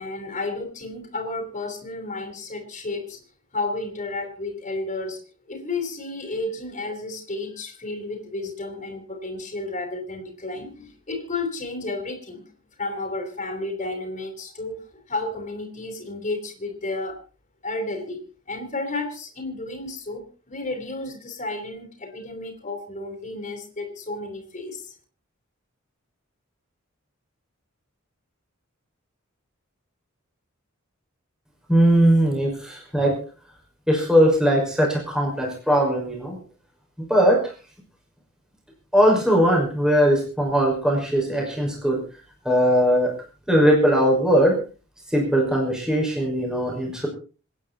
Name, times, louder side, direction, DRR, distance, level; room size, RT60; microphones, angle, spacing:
voice 1, 0.0-3.2 3.5-5.2 5.5-12.4 12.8-17.2 17.6-24.9, left 2 dB, 35° left, 3 dB, 4.3 m, -32 dB
voice 2, 31.7-33.1 33.9-36.4 37.1-37.4 38.9-42.0 42.4-43.1 43.5-44.6 45.1-47.1, equal, 5° right, -1 dB, 5.7 m, -19 dB
27.0 x 10.0 x 4.3 m, 0.36 s
head